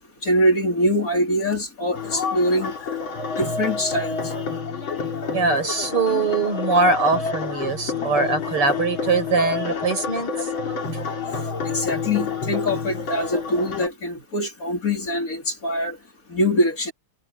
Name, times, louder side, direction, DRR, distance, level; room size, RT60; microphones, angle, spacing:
voice 1, 0.2-2.7 3.4-4.2 11.6-16.0 16.3-16.9, equal, 40° left, 3.7 m, -23 dB
sound 1, 1.9-13.9, left 5 dB, 65° left, 3.6 m, -29 dB
voice 2, 5.3-10.5, right 3 dB, 90° right, 7.2 m, -22 dB
omnidirectional pair, 2.4 m